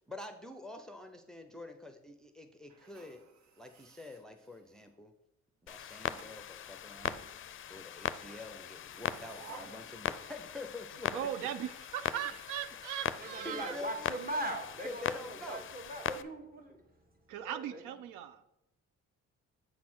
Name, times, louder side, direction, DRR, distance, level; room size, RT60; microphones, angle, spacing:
voice 1, 0.1-3.2 3.6-5.1 5.6-7.3 7.7-11.3 13.3-14.1 14.8-15.7, left 2 dB, ahead, 6 dB, 0.6 m, -47 dB
sound 1, 2.7-5.0 5.7-6.4 7.0-7.9 8.7-10.8 11.1-11.2 11.6-13.7, right 4 dB, 65° right, 0.9 m, -56 dB
Clock, 5.7-16.2, left 10 dB, 45° left, 0.4 m, -40 dB
voice 2, 11.1-13.8 17.3-18.4, right 10 dB, 90° right, 12 dB, 0.5 m, -39 dB
voice 3, 13.2-16.8 17.3-17.8, right 1 dB, 30° right, 3 dB, 1.7 m, -40 dB
7.6 x 4.2 x 6.1 m, 0.87 s
cardioid pair, 90°, 30 cm